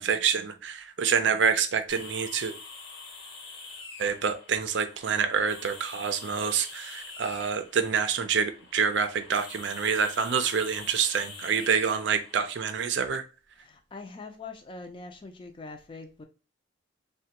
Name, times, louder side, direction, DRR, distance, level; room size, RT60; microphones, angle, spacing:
voice 1, 0.0-2.5 4.0-13.2, right 6 dB, 80° right, 0.4 m, -27 dB
sound 1, 1.9-12.7, left 4 dB, 60° left, 0.7 m, -45 dB
voice 2, 13.6-16.2, left 3 dB, 25° left, 0.4 m, -43 dB
3.2 x 2.2 x 2.8 m
head